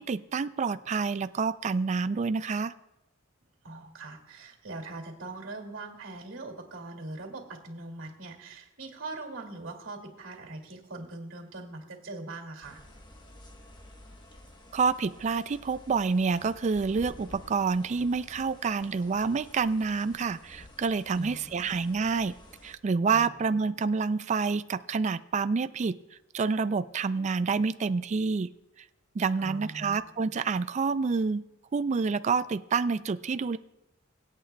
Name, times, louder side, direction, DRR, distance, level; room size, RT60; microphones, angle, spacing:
voice 1, 0.0-2.7 14.7-22.3 22.6-26.0 26.3-28.5 29.1-31.4 31.7-33.6, right 4 dB, 35° right, 13 dB, 0.3 m, -28 dB
voice 2, 3.6-12.8 21.1-21.7 23.1-23.4 29.4-30.1, right 2 dB, 70° right, 2 dB, 2.4 m, -41 dB
sound 1, 12.6-22.8, left 1 dB, 20° left, 1.1 m, -51 dB
24.5 x 8.8 x 2.2 m, 0.95 s
head